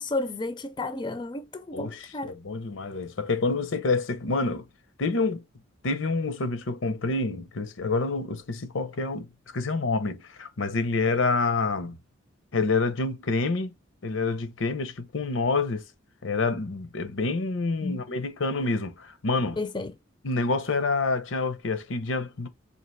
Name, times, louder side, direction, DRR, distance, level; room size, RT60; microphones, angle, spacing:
voice 1, 0.0-2.3 17.8-18.2 19.6-19.9, left 2 dB, 25° left, 0.4 m, -32 dB
voice 2, 2.2-4.6 5.0-5.4 5.8-9.3 9.5-11.9 12.5-13.7 14.0-15.8 16.2-19.6 20.2-22.5, left 3 dB, 85° left, 0.8 m, -27 dB
4.0 x 2.8 x 3.2 m
head